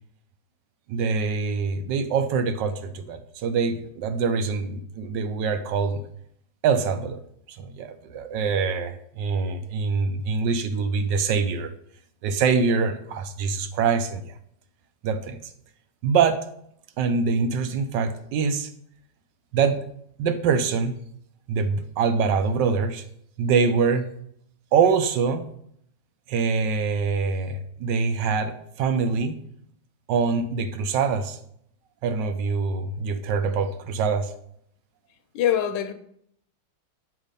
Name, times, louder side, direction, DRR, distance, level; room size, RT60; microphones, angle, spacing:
voice 1, 0.9-6.0 6.6-7.2 7.5-11.7 12.2-14.4 15.0-15.4 16.0-16.4 17.0-18.7 19.5-19.8 20.2-21.0 21.5-23.0 23.4-24.1 24.7-25.5 26.3-29.4 30.1-31.4 32.0-34.3, right 5 dB, 75° right, 1.3 m, -24 dB
voice 2, 35.3-35.9, left 10 dB, 75° left, 1.2 m, -23 dB
7.6 x 3.6 x 5.1 m
omnidirectional pair, 2.0 m